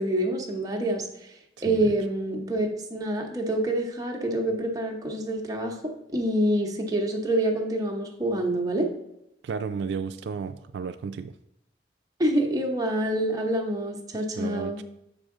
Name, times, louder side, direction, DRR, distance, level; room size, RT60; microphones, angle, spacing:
voice 1, 0.0-1.3 1.6-8.9 12.2-14.8, right 1 dB, 20° right, 1 dB, 0.9 m, -27 dB
voice 2, 9.4-11.3 14.4-14.8, right 5 dB, 80° right, 10 dB, 0.3 m, -33 dB
7.0 x 4.8 x 3.7 m, 0.82 s
head